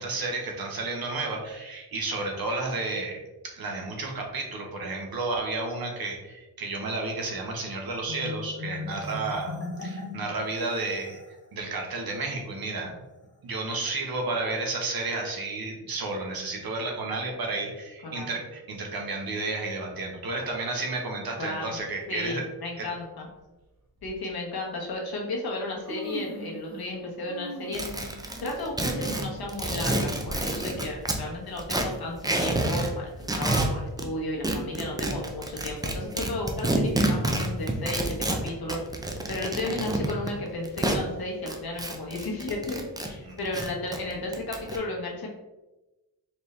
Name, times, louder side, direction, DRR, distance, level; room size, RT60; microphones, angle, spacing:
voice 1, 0.0-3.2 3.4-9.5 9.8-11.2 11.5-13.0 13.4-22.4 22.8-22.9 43.2-43.4, right 3 dB, 55° right, 1 dB, 1.0 m, -32 dB
Marimba xylophone, 8.0-11.4, left 3 dB, 35° left, 1.3 m, -38 dB
voice 2, 18.0-18.4 21.4-21.8 22.1-23.3 24.0-27.8 28.4-38.8 39.3-45.3, left 2 dB, 55° left, -1 dB, 1.2 m, -34 dB
Human voice, 22.0-22.2 23.3-23.4 24.0-24.2 25.2-25.3 25.6-27.0 27.2-30.8 31.2-31.3 32.1-32.2, equal, 35° right, 1.5 m, -41 dB
sound 1, 27.7-31.2 31.6-32.9 33.2-34.1 34.4-41.0 41.5-43.1 43.4-44.8, right 1 dB, 10° right, 0.4 m, -28 dB
4.4 x 2.7 x 3.2 m, 1.1 s
cardioid pair, 100°, 43 cm